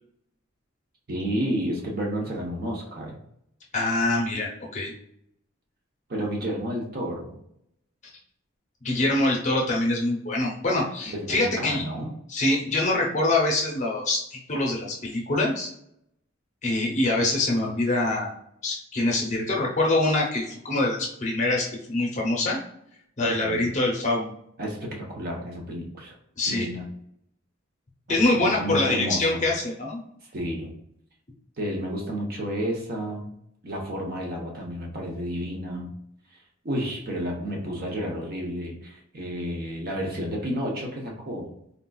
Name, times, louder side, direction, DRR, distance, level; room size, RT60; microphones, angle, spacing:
voice 1, 1.1-3.2 6.1-7.4 11.1-12.2 23.2-23.6 24.6-26.1 26.5-26.8 28.1-29.4 30.3-30.7 31.6-33.3 33.6-35.9 36.6-41.5, equal, 45° right, 0 dB, 0.8 m, -31 dB
voice 2, 3.7-4.9 8.8-11.8 12.3-15.7 16.6-18.3 18.6-22.6 23.2-24.3 26.4-26.7 28.1-30.0, left 2 dB, 35° left, -2 dB, 0.7 m, -24 dB
3.8 x 2.4 x 2.3 m, 0.70 s
head